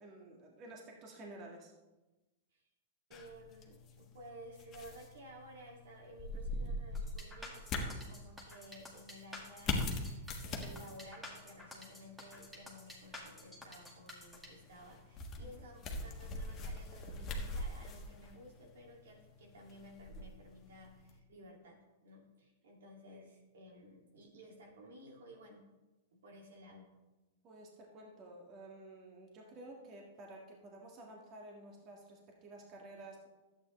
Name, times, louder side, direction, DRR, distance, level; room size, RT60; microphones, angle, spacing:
voice 1, 0.0-1.7 15.4-15.6 23.1-23.2 27.4-33.3, right 2 dB, 35° right, 0 dB, 1.7 m, -52 dB
sound 1, 3.1-21.2, left 2 dB, 30° left, 1.4 m, -43 dB
voice 2, 3.1-25.6 26.1-26.9, equal, 75° right, 0 dB, 2.3 m, -55 dB
sound 2, 6.9-14.5, left 1 dB, ahead, 1.8 m, -51 dB
11.0 x 8.4 x 3.2 m, 1.1 s
hypercardioid pair, 120°, 0 cm